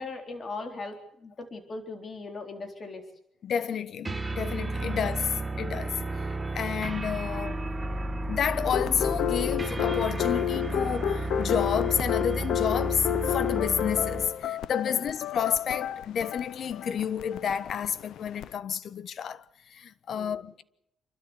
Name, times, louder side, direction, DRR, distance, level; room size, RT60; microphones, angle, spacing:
voice 1, 0.0-3.0 4.8-5.0 14.8-15.1 20.1-20.4, left 3 dB, 40° left, 4.0 m, -39 dB
voice 2, 3.4-6.2 6.5-7.6 8.3-19.4 19.7-20.6, left 8 dB, 60° left, 1.1 m, -30 dB
sound 1, 4.0-14.4, right 2 dB, 20° right, 1.4 m, -32 dB
sound 2, 8.7-18.5, left 11 dB, 75° left, 0.8 m, -31 dB
28.5 x 13.0 x 8.1 m
cardioid pair, 90°, 0 cm